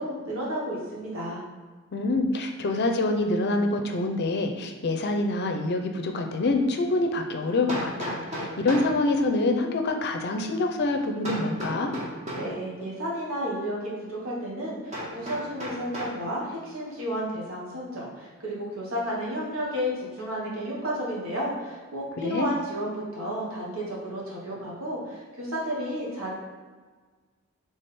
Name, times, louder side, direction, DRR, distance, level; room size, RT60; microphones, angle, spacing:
voice 1, 0.0-1.4 12.4-26.3, equal, 80° right, -4 dB, 1.3 m, -32 dB
voice 2, 1.9-11.9 22.2-22.5, left 2 dB, 55° left, 4 dB, 0.5 m, -26 dB
Hammer, 7.7-9.0 11.2-12.5 14.9-16.2, equal, 35° right, 1.3 m, -34 dB
3.5 x 3.5 x 4.2 m, 1.4 s
head